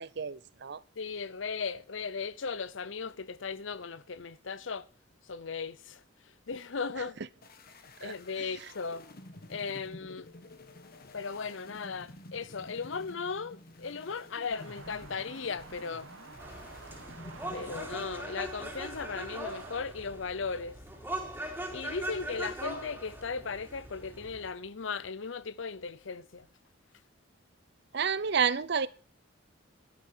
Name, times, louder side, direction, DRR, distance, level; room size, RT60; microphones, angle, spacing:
voice 1, 0.0-0.8 8.0-8.1 27.9-28.9, right 6 dB, 60° right, 0.7 m, -30 dB
voice 2, 1.0-4.9 5.3-6.0 6.5-7.2 8.0-9.0 9.5-10.3 11.0-16.1 17.5-20.8 21.7-26.5, left 5 dB, 70° left, 0.7 m, -37 dB
sound 1, 7.4-18.1, left 1 dB, 50° left, 1.5 m, -51 dB
sound 2, 14.5-19.8, right 4 dB, 80° right, 1.7 m, -50 dB
sound 3, 16.4-24.5, right 1 dB, 10° right, 3.4 m, -41 dB
12.5 x 10.5 x 4.5 m
head